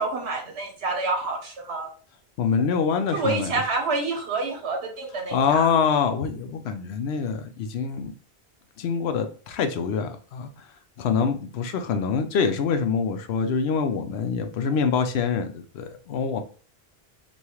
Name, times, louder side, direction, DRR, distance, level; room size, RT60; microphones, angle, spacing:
voice 1, 0.0-1.9 3.1-5.7, right 3 dB, 90° right, 2 dB, 1.3 m, -28 dB
voice 2, 2.4-3.5 5.3-8.1 8.8-10.5 11.0-16.4, left 6 dB, 80° left, 8 dB, 0.8 m, -25 dB
4.1 x 2.3 x 3.0 m, 0.39 s
omnidirectional pair, 1.1 m